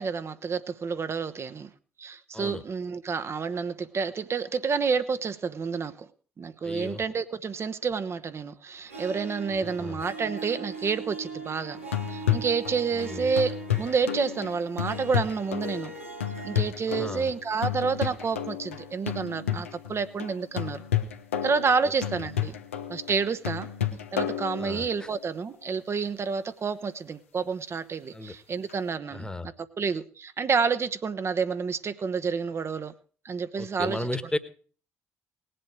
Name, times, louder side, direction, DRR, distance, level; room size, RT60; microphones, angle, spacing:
voice 1, 0.0-1.7 2.0-6.1 6.4-11.8 12.1-15.9 16.4-20.8 21.4-22.6 22.9-23.7 24.1-32.9 33.2-34.3, right 5 dB, 40° right, 10 dB, 1.0 m, -29 dB
voice 2, 6.6-7.0 9.6-10.0 12.9-13.3 16.9-17.3 24.6-24.9 28.1-28.3 29.1-29.5 33.6-34.4, left 1 dB, 10° left, 13 dB, 1.5 m, -34 dB
Harp, 8.9-16.7, right 3 dB, 90° right, 1.4 m, -40 dB
sound 1, 11.8-25.1 28.7-28.8, left 10 dB, 80° left, 0.9 m, -32 dB
19.5 x 7.9 x 4.7 m, 0.41 s
figure-of-eight pair, 45°, 7 cm